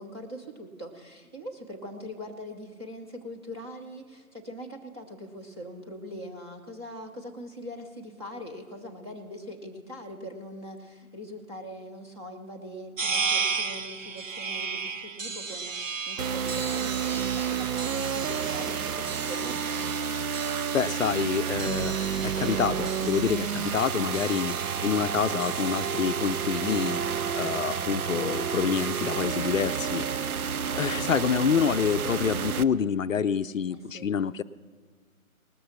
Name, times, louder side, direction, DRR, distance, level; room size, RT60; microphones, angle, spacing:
voice 1, 0.0-20.0 33.7-34.1, equal, 20° right, 2 dB, 0.7 m, -42 dB
sound 1, 13.0-27.0, right 5 dB, 60° right, 1.0 m, -36 dB
sound 2, 16.2-32.6, right 7 dB, 80° right, 0.6 m, -30 dB
voice 2, 20.7-24.5 24.8-30.0 30.8-34.4, left 7 dB, 65° left, 14 dB, 0.5 m, -27 dB
19.0 x 6.8 x 5.7 m, 1.5 s
figure-of-eight pair, 150°, 43 cm